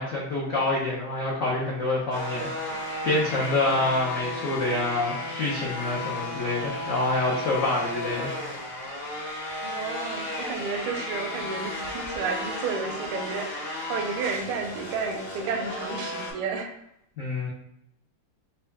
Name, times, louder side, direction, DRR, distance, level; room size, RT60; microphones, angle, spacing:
voice 1, 0.0-8.4 17.2-17.5, left 2 dB, 75° left, -5 dB, 0.7 m, -27 dB
sound 1, 2.1-16.3, left 2 dB, 50° left, 1.0 m, -34 dB
voice 2, 9.6-13.5 13.9-16.7, right 5 dB, 80° right, 5 dB, 1.4 m, -31 dB
4.2 x 2.3 x 3.3 m, 0.80 s
omnidirectional pair, 2.3 m